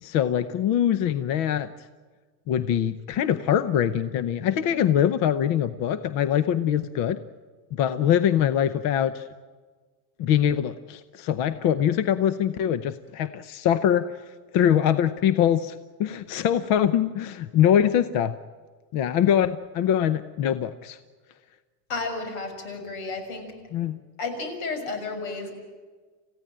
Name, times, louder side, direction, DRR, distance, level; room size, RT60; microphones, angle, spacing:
voice 1, 0.0-1.7 2.5-7.2 7.7-9.2 10.2-14.1 14.5-15.7 16.0-18.3 18.9-21.0 23.7-24.0, left 10 dB, 45° left, 13 dB, 0.8 m, -23 dB
voice 2, 21.9-23.5 24.2-25.6, left 3 dB, 80° left, 6 dB, 6.6 m, -32 dB
29.0 x 15.5 x 8.9 m, 1.5 s
cardioid pair, 160°, 48 cm